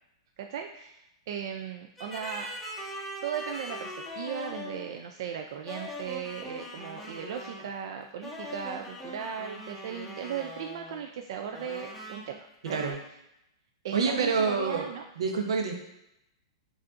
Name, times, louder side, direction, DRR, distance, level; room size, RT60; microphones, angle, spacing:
voice 1, 0.4-2.5 3.2-12.4 12.7-13.0 13.8-15.0, right 8 dB, 50° right, 3 dB, 0.3 m, -37 dB
sound 1, 2.0-4.9 5.7-7.7 8.2-11.0 11.5-12.4 12.7-12.9, left 1 dB, 5° left, 0.6 m, -41 dB
voice 2, 12.6-13.0 13.9-14.9 15.2-15.8, right 4 dB, 85° right, 3 dB, 0.8 m, -27 dB
7.2 x 2.5 x 2.4 m, 0.86 s
supercardioid pair, 165°, 3 cm